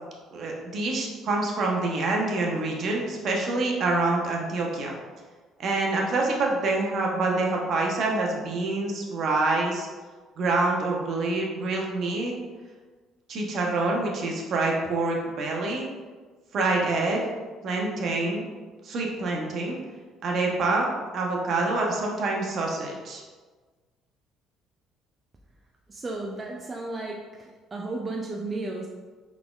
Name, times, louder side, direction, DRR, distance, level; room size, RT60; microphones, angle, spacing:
voice 1, 0.3-5.0 5.6-9.9 10.4-12.3 13.3-15.9 16.5-17.2 17.6-18.5 18.8-19.8 20.2-23.2, right 2 dB, 50° right, 0 dB, 0.7 m, -26 dB
voice 2, 25.9-28.9, right 2 dB, 20° right, -1 dB, 0.3 m, -34 dB
4.0 x 3.5 x 2.3 m, 1.4 s
cardioid pair, 125°, 0 cm